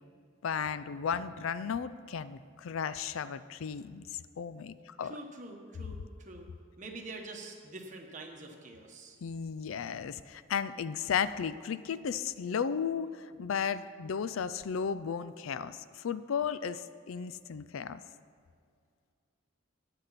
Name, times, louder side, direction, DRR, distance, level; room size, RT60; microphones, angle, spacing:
voice 1, 0.4-5.2 9.2-18.0, left 7 dB, 75° left, 15 dB, 0.4 m, -34 dB
voice 2, 5.0-6.5 6.8-9.2, right 2 dB, 35° right, 1 dB, 1.3 m, -45 dB
13.0 x 10.0 x 4.1 m, 2.2 s
head